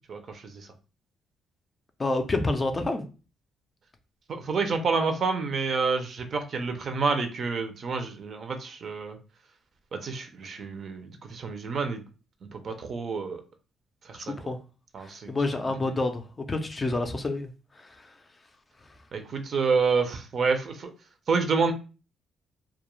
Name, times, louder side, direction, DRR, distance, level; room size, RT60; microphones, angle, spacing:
voice 1, 0.1-0.7 4.3-9.2 9.9-12.0 12.5-13.4 14.1-14.3 14.9-15.3 19.1-20.9 21.3-21.7, right 4 dB, 50° right, 6 dB, 0.5 m, -28 dB
voice 2, 2.0-3.0 14.1-14.6 15.0-18.1, left 2 dB, 25° left, 6 dB, 0.4 m, -29 dB
2.3 x 2.1 x 3.0 m, 0.33 s
cardioid pair, 90°, 0 cm